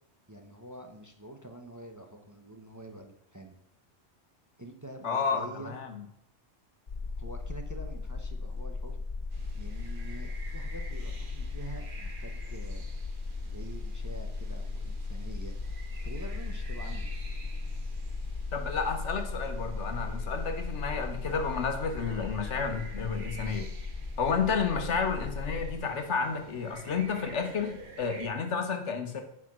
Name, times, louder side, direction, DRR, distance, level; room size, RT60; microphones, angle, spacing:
voice 1, 0.3-3.6 4.6-5.8 7.2-9.0 9.5-12.9 13.4-15.6 16.0-17.1, right 1 dB, 20° right, 4 dB, 0.8 m, -46 dB
voice 2, 5.0-5.9 18.5-23.7 24.2-29.2, left 5 dB, 75° left, 6 dB, 1.4 m, -31 dB
sound 1, 6.9-25.8, left 3 dB, 45° left, 1.4 m, -37 dB
sound 2, 9.3-28.3, right 3 dB, 50° right, 1.3 m, -49 dB
9.5 x 4.9 x 6.2 m, 0.80 s
omnidirectional pair, 1.2 m